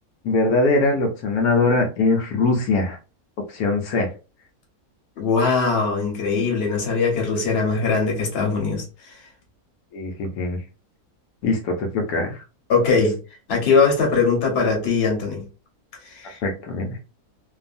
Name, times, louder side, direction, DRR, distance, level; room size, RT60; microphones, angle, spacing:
voice 1, 0.2-3.0 3.5-4.1 9.9-10.6 11.4-12.4 16.2-17.0, left 3 dB, 80° left, 1.1 m, -22 dB
voice 2, 5.2-9.2 12.7-13.2 13.5-15.4 16.0-16.4, left 4 dB, 45° left, 1.1 m, -21 dB
2.6 x 2.3 x 2.4 m
omnidirectional pair, 1.6 m